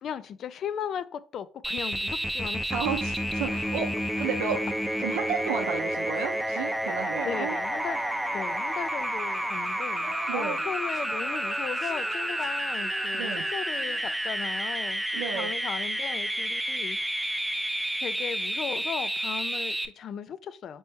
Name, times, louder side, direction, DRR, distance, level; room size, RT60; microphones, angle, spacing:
voice 1, 0.0-2.8 4.5-4.6 7.2-8.1 8.3-17.3 18.0-20.8, left 8 dB, 55° left, 0.3 m, -37 dB
sound 1, 1.6-19.9, equal, 5° right, 0.5 m, -30 dB
voice 2, 2.7-4.6 5.0-7.5 10.3-10.6 13.1-13.4 15.1-15.5, right 7 dB, 85° right, 0.5 m, -32 dB
sound 2, 5.4-14.1, right 2 dB, 30° right, 1.0 m, -47 dB
4.2 x 3.0 x 3.5 m
supercardioid pair, 80°, 0 cm